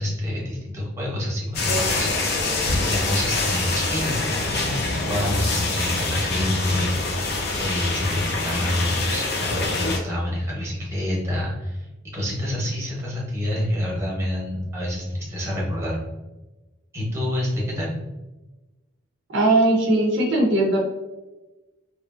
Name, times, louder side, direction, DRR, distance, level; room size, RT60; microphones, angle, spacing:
voice 1, 0.0-2.6 2.9-11.9 12.1-16.0 16.9-18.0, left 1 dB, 15° right, -5 dB, 0.7 m, -28 dB
sound 1, 1.5-10.0, left 2 dB, 50° left, 0.5 m, -25 dB
voice 2, 19.3-20.8, right 2 dB, 60° right, 0 dB, 0.5 m, -19 dB
2.8 x 2.4 x 2.3 m, 1.1 s
head